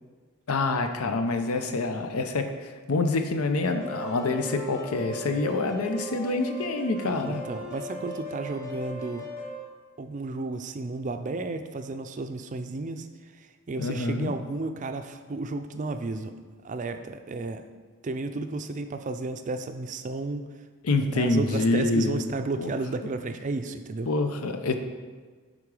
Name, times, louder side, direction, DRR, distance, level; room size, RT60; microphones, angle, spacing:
voice 1, 0.5-7.4 13.8-14.3 20.8-22.1 22.6-22.7 24.1-24.7, left 3 dB, 85° left, 7 dB, 0.7 m, -26 dB
sound 1, 3.6-9.6, left 1 dB, 40° left, 1.8 m, -38 dB
voice 2, 7.1-9.3 10.0-13.1 13.4-16.3 16.6-17.6 18.0-20.5 21.1-24.1, right 3 dB, 35° right, 8 dB, 0.4 m, -33 dB
8.5 x 3.7 x 4.8 m, 1.5 s
head